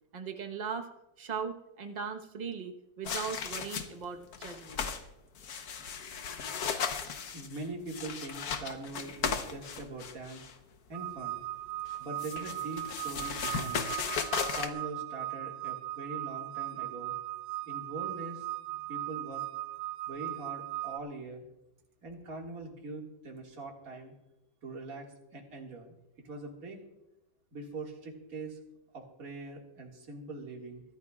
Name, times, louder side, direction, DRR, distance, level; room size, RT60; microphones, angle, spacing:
voice 1, 0.1-0.9 1.2-4.9, right 6 dB, 30° right, 4 dB, 0.9 m, -39 dB
sound 1, 3.0-4.0 4.3-5.0 5.4-10.5 11.9-14.7, left 6 dB, 60° left, 1.4 m, -36 dB
voice 2, 7.3-10.5 10.9-11.4 12.0-13.9 14.5-17.1 17.7-18.4 18.9-19.4 20.1-21.4 22.0-24.1 24.6-25.1 25.3-26.8 27.5-28.6 28.9-30.8, right 2 dB, 50° right, 0 dB, 2.4 m, -42 dB
sound 2, 10.9-21.0, right 15 dB, 70° right, 1.1 m, -38 dB
23.5 x 13.0 x 2.4 m, 0.89 s
omnidirectional pair, 2.0 m